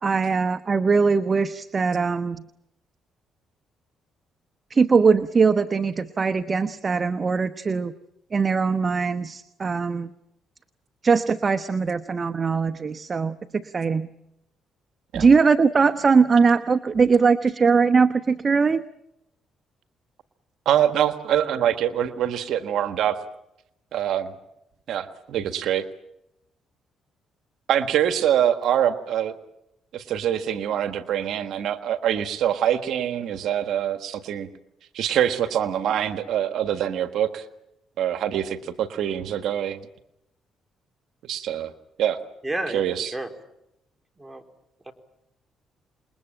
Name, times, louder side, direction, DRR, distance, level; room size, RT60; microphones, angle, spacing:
voice 1, 0.0-2.4 4.7-7.9 8.3-10.1 11.0-14.1 15.1-18.8, right 5 dB, 35° right, 11 dB, 1.0 m, -21 dB
voice 2, 20.6-23.2 23.9-24.3 24.9-25.9 27.7-29.3 29.9-34.5 34.9-37.4 38.0-39.8 41.2-41.7 42.0-42.2 42.7-43.1, right 10 dB, 75° right, 9 dB, 1.5 m, -24 dB
voice 3, 42.4-43.3 44.2-44.4 44.9-45.0, right 2 dB, 10° right, 5 dB, 3.7 m, -31 dB
28.0 x 21.5 x 9.0 m, 0.84 s
cardioid pair, 90°, 0 cm